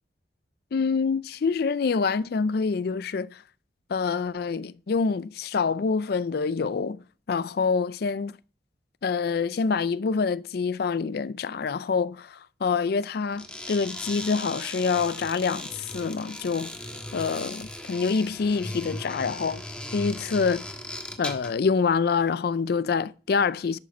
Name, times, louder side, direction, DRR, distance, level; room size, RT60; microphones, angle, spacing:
voice 1, 0.7-3.4 3.9-7.0 7.3-8.4 9.0-16.7 17.1-19.6 19.9-20.6 21.2-23.8, left 5 dB, 60° left, 0.4 m, -26 dB
sound 1, 13.3-21.6, left 1 dB, 5° left, 1.3 m, -38 dB
11.0 x 7.5 x 4.2 m
head